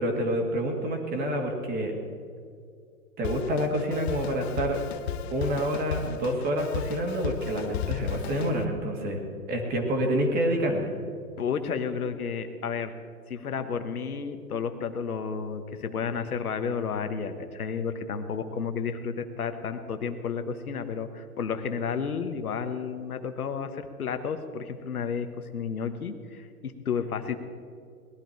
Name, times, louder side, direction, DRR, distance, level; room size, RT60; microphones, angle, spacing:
voice 1, 0.0-1.9 3.2-4.8 5.3-9.2 9.5-10.9, equal, 20° right, 2 dB, 2.0 m, -27 dB
Drum kit, 3.2-8.6, left 9 dB, 45° left, 0.9 m, -35 dB
voice 2, 11.4-12.9 13.3-25.3 25.5-27.4, left 6 dB, 70° left, 8 dB, 1.3 m, -32 dB
19.0 x 11.5 x 4.5 m, 2.3 s
figure-of-eight pair, 125°, 46 cm